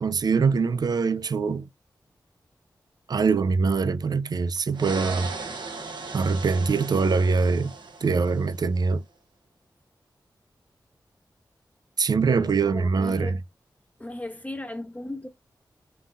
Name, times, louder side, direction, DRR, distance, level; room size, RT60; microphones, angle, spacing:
voice 1, 0.0-1.7 3.1-5.3 6.1-7.7 8.0-9.0 12.0-13.4, right 4 dB, 60° right, 0.4 m, -23 dB
sound 1, 4.7-8.6, right 4 dB, 75° right, 0.8 m, -37 dB
voice 2, 12.3-13.4 14.0-15.3, left 1 dB, 20° left, 0.6 m, -36 dB
3.8 x 2.7 x 2.5 m
cardioid pair, 45°, 8 cm